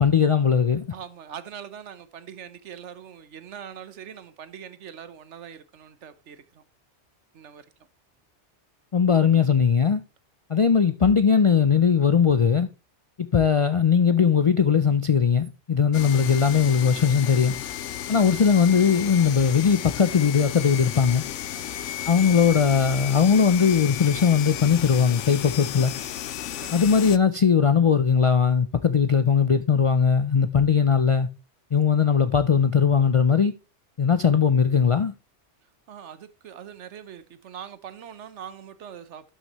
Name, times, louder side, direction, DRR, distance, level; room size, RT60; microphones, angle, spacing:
voice 1, 0.0-0.8 8.9-10.0 10.5-12.7 13.2-17.6 18.1-21.3 22.1-25.9 26.7-31.3 31.7-33.5 34.0-35.1, left 6 dB, 55° left, 0.3 m, -19 dB
voice 2, 0.9-6.6 7.3-7.7 21.5-21.8 26.6-26.8 35.9-39.3, right 8 dB, 80° right, 1.2 m, -42 dB
sound 1, 15.9-27.2, left 11 dB, 90° left, 0.9 m, -33 dB
12.0 x 6.3 x 3.0 m
omnidirectional pair, 1.2 m